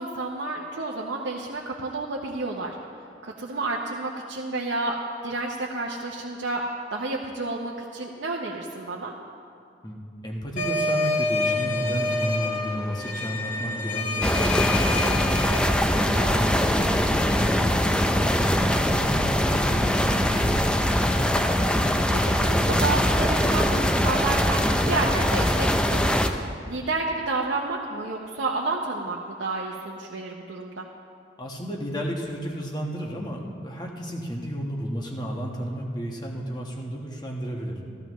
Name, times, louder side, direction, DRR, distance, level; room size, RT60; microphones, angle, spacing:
voice 1, 0.0-2.8 3.2-5.0 5.2-6.6 6.9-9.1 16.1-16.5 21.8-26.2 26.7-30.9, right 3 dB, 80° right, -2 dB, 0.8 m, -30 dB
voice 2, 10.2-15.6 16.2-21.0 31.4-37.8, equal, 20° left, 0 dB, 1.2 m, -32 dB
sound 1, 10.6-15.6, left 2 dB, 45° left, 1.5 m, -27 dB
sound 2, 14.2-26.3, equal, 5° left, 0.4 m, -22 dB
14.5 x 14.5 x 3.1 m, 2.4 s
head